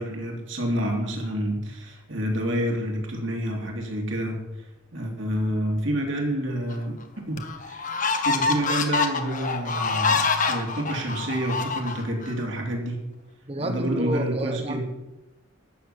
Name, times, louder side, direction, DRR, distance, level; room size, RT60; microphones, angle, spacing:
voice 1, 0.0-4.4 4.9-7.0 7.3-13.0 13.6-14.8, right 1 dB, 60° right, 0 dB, 3.4 m, -28 dB
sound 1, 6.7-6.8 7.4-12.3, left 4 dB, 35° left, 1.3 m, -26 dB
voice 2, 13.5-14.8, right 1 dB, 30° right, 7 dB, 1.4 m, -29 dB
12.5 x 7.4 x 9.9 m, 1.0 s
head